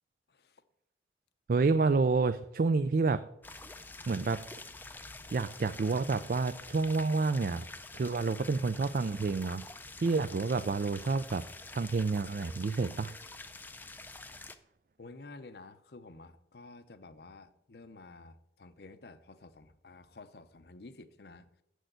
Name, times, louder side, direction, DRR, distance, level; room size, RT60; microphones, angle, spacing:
voice 1, 0.3-0.6 5.2-5.3 15.0-21.5, left 3 dB, 65° left, 12 dB, 0.7 m, -51 dB
voice 2, 1.5-3.2 4.1-4.4 5.3-7.6 7.9-9.6 10.0-11.4 11.7-13.1, right 4 dB, 50° right, 11 dB, 0.4 m, -29 dB
sound 1, 3.4-14.5, left 3 dB, 10° left, 0.4 m, -47 dB
7.8 x 6.3 x 7.9 m, 0.80 s
head